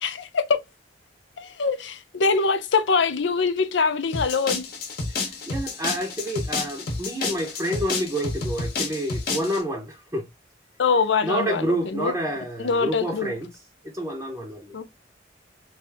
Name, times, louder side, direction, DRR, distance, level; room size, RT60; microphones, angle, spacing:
voice 1, 0.0-0.6 1.4-4.6 10.8-12.1 12.6-13.3 14.7-14.8, left 4 dB, 75° left, 0.6 m, -23 dB
sound 1, 4.1-9.6, left 3 dB, 55° left, 1.0 m, -30 dB
voice 2, 5.1-10.3 11.2-13.5 13.8-14.8, equal, 15° right, 0.7 m, -28 dB
3.2 x 2.6 x 3.4 m
head